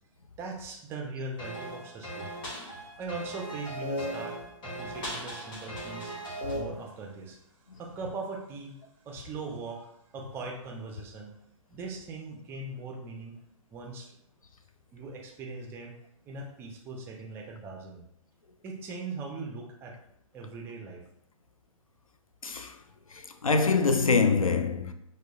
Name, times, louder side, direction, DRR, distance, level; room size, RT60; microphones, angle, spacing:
voice 1, 0.4-2.3 3.0-6.1 6.5-11.3 11.7-13.4 13.7-14.2 14.9-16.0 16.3-18.0 18.6-20.0 20.3-21.1, right 3 dB, 15° right, 0.4 m, -40 dB
sound 1, 1.4-6.6, right 1 dB, 25° left, 1.2 m, -37 dB
voice 2, 22.4-22.8 23.4-24.9, left 4 dB, 80° left, 0.4 m, -24 dB
5.9 x 2.1 x 2.4 m
figure-of-eight pair, 120°, 17 cm